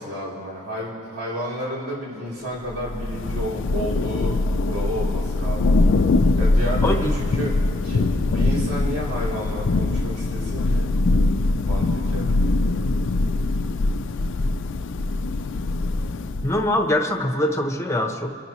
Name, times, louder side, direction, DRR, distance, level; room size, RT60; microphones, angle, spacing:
voice 1, 0.0-4.4 4.7-5.7 6.4-7.5 7.8-10.9 11.6-12.3, equal, 85° right, -5 dB, 3.6 m, -31 dB
Thunder / Rain, 2.7-16.8, left 2 dB, 60° left, 0.5 m, -22 dB
voice 2, 6.8-7.2 8.3-8.5 16.4-18.3, left 1 dB, 15° left, 4 dB, 0.9 m, -23 dB
28.5 x 11.5 x 3.1 m, 2.6 s
head